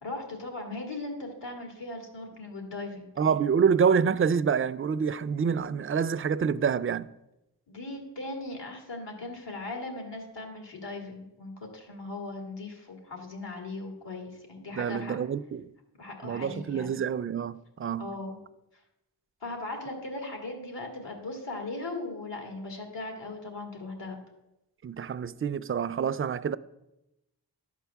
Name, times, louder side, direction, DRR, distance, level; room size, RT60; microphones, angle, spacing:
voice 1, 0.0-3.1 7.7-15.2 16.0-17.0 18.0-18.4 19.4-24.2, left 2 dB, 75° left, 2.1 m, -38 dB
voice 2, 3.2-7.1 14.8-15.7 16.2-18.1 24.8-26.6, right 6 dB, 30° right, 0.4 m, -27 dB
11.5 x 4.6 x 7.0 m
wide cardioid pair, 60°, 42 cm